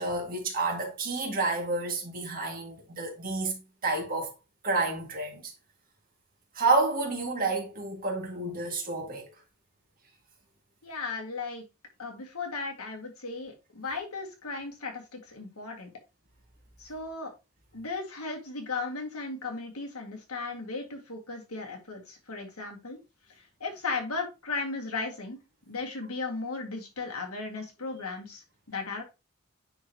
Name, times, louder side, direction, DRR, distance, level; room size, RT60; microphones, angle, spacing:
voice 1, 0.0-4.3 4.6-5.5 6.5-9.3, right 3 dB, 40° right, 2.0 m, -29 dB
voice 2, 10.8-11.6 12.0-15.9 16.8-17.3 17.7-23.0 23.4-25.4 25.7-29.0, left 3 dB, 90° left, 1.9 m, -36 dB
9.7 x 3.9 x 2.9 m
head